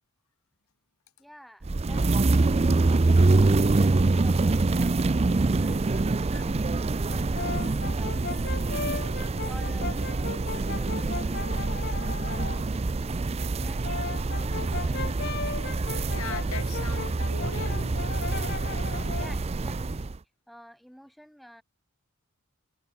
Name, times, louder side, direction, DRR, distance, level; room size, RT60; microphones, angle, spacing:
voice 1, 1.2-2.0 2.3-8.9 9.4-13.2 13.6-15.0 19.1-20.2 20.5-21.6, equal, ahead, 6.8 m, -51 dB
sound 1, 1.6-20.2, right 3 dB, 30° right, 0.5 m, -25 dB
Brass instrument, 7.1-12.7 13.6-19.4, left 5 dB, 50° left, 1.1 m, -37 dB
voice 2, 16.1-18.0, left 4 dB, 85° left, 3.4 m, -39 dB
head